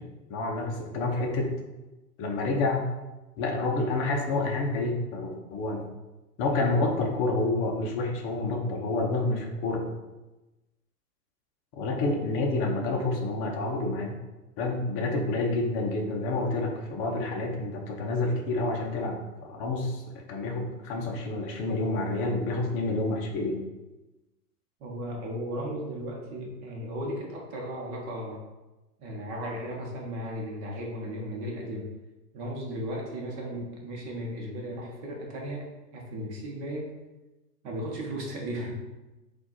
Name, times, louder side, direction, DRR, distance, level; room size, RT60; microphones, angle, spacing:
voice 1, 0.0-1.5 2.2-2.9 3.4-5.9 6.4-9.9 11.7-14.2 14.6-23.6, left 2 dB, 25° left, 1 dB, 0.6 m, -29 dB
voice 2, 24.8-28.4 29.0-31.9 32.3-36.9 37.6-38.7, equal, 35° right, -1 dB, 1.1 m, -35 dB
4.3 x 2.6 x 4.1 m, 1.1 s
hypercardioid pair, 125°, 49 cm